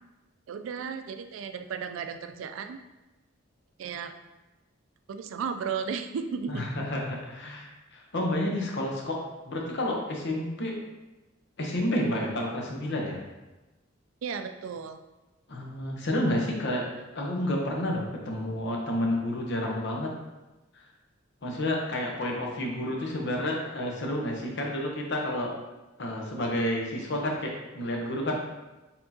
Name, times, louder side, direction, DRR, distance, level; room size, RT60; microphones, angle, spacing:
voice 1, 0.5-2.8 3.8-4.2 5.1-6.7 14.2-15.0, right 6 dB, 75° right, 8 dB, 0.3 m, -34 dB
voice 2, 6.5-10.7 11.6-13.2 15.5-16.9 17.1-20.1 20.7-20.8 21.4-25.5 26.0-28.4, left 1 dB, 60° left, 0 dB, 0.8 m, -30 dB
4.4 x 3.6 x 2.8 m, 1.1 s
head